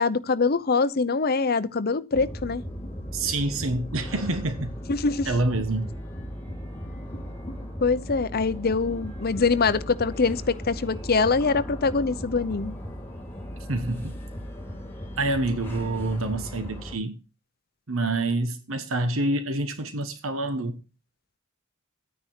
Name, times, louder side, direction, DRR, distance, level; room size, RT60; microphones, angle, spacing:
voice 1, 0.0-2.6 4.9-5.3 7.8-12.7, left 4 dB, 50° left, 0.7 m, -24 dB
sound 1, 2.1-17.0, equal, 10° left, 2.7 m, -37 dB
voice 2, 3.1-4.7 5.2-5.9 13.7-14.2 15.2-17.2 17.9-20.8, right 2 dB, 85° right, 1.3 m, -27 dB
10.5 x 9.6 x 4.4 m
head